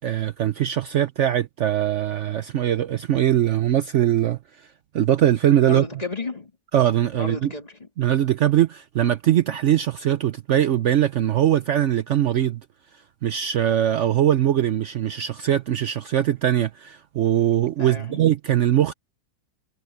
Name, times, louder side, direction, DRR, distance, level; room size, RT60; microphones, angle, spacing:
voice 1, 0.0-4.7 4.9-5.8 6.7-7.5 8.0-12.6 13.2-18.9, right 11 dB, 70° right, 0.7 m, -21 dB
voice 2, 5.6-6.5 7.1-7.9 17.8-18.2, left 3 dB, 20° left, 2.7 m, -32 dB
omnidirectional pair, 2.0 m